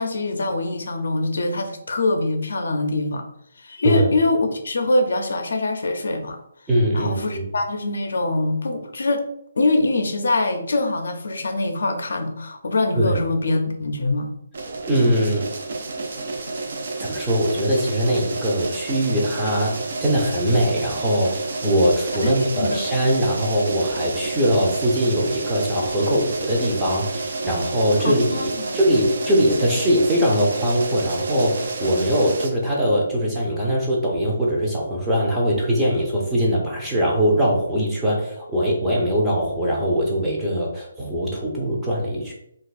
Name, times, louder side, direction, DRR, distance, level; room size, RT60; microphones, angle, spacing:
voice 1, 0.0-3.2 3.6-6.4 6.9-9.2 9.6-14.3 22.2-22.9 28.0-28.7, left 2 dB, 75° left, 5 dB, 0.5 m, -24 dB
voice 2, 6.7-7.4 13.0-13.2 14.9-15.4 17.0-42.3, equal, 5° right, -5 dB, 0.6 m, -21 dB
sound 1, 14.5-32.5, right 3 dB, 55° right, 0.5 m, -30 dB
2.5 x 2.3 x 4.0 m, 0.75 s
hypercardioid pair, 170°, 0 cm